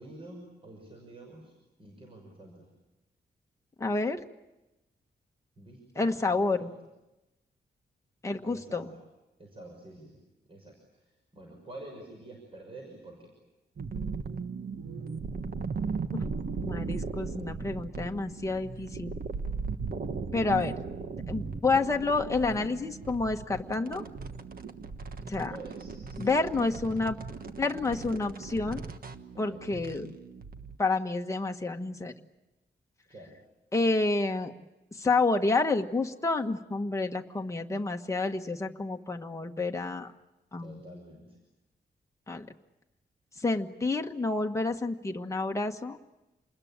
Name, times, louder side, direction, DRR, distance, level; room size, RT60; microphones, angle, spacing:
voice 1, 0.0-1.5 1.8-2.7 5.6-6.7 8.4-9.0 9.4-10.2 10.5-11.1 11.3-13.3 25.2-26.6 29.3-29.6 33.1-33.3 40.6-41.4, right 2 dB, 30° right, 1 dB, 6.4 m, -48 dB
voice 2, 3.8-4.2 6.0-6.7 8.2-8.9 16.6-19.1 20.3-20.7 21.3-24.0 25.3-25.5 26.2-27.2 27.6-28.8 29.4-30.1 30.8-32.1 33.7-34.5 34.9-40.1 40.5-40.8 42.3-42.5 43.4-46.0, left 3 dB, 15° left, 3 dB, 1.3 m, -29 dB
sound 1, 13.8-30.8, right 4 dB, 55° right, 1.4 m, -37 dB
28.0 x 21.0 x 8.9 m, 1.0 s
wide cardioid pair, 145°, 18 cm